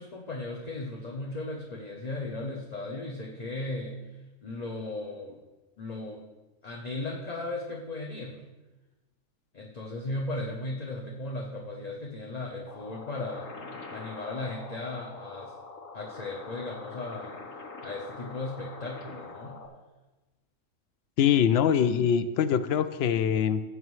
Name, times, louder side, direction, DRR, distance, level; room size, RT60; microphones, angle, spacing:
voice 1, 0.0-4.0 4.4-5.4 5.8-6.2 6.6-8.4 9.5-13.5 13.9-15.5 15.9-17.3 17.8-19.6, left 2 dB, 35° left, 0 dB, 0.8 m, -36 dB
sound 1, 12.7-19.7, left 3 dB, 60° left, 1.5 m, -44 dB
voice 2, 21.2-23.6, left 8 dB, 80° left, 12 dB, 0.5 m, -23 dB
16.0 x 7.9 x 3.2 m, 1.1 s
omnidirectional pair, 1.6 m